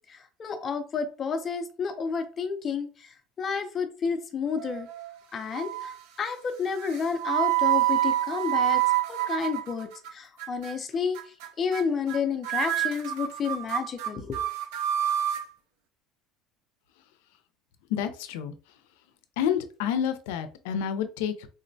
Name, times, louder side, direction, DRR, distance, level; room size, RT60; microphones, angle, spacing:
voice 1, 0.1-2.9 3.4-4.9 5.3-8.8 9.1-11.2 11.6-14.4, left 6 dB, 25° left, 8 dB, 0.4 m, -30 dB
sound 1, 4.6-5.2 5.5-6.0 6.8-10.1 10.4-10.7 11.1-11.5 11.7-11.8 12.1-12.2 12.4-15.4, right 13 dB, 80° right, 0.5 m, -27 dB
voice 2, 17.9-18.5 19.4-21.5, left 8 dB, 85° left, 10 dB, 0.4 m, -29 dB
3.6 x 2.1 x 2.6 m, 0.37 s
cardioid pair, 160°, 0 cm